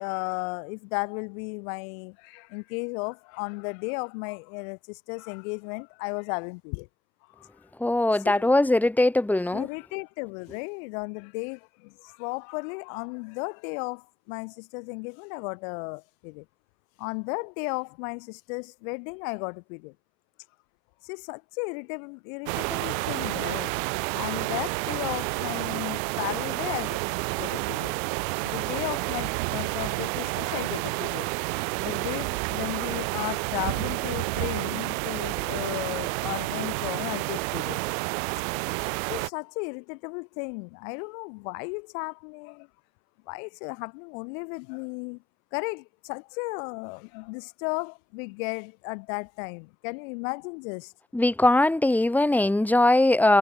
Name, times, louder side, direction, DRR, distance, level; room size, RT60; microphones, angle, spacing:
voice 1, 0.0-6.9 7.3-7.5 8.2-8.5 9.5-16.5 17.0-20.0 21.0-23.8 24.1-27.9 28.4-31.3 31.8-37.8 39.1-42.7 43.3-45.2 45.5-50.9, left 34 dB, 75° left, 7.1 m, -35 dB
voice 2, 7.8-9.7 51.1-53.4, left 2 dB, 5° left, 1.2 m, -21 dB
sound 1, 22.5-39.3, right 32 dB, 75° right, 3.7 m, -30 dB
supercardioid pair, 125°, 40 cm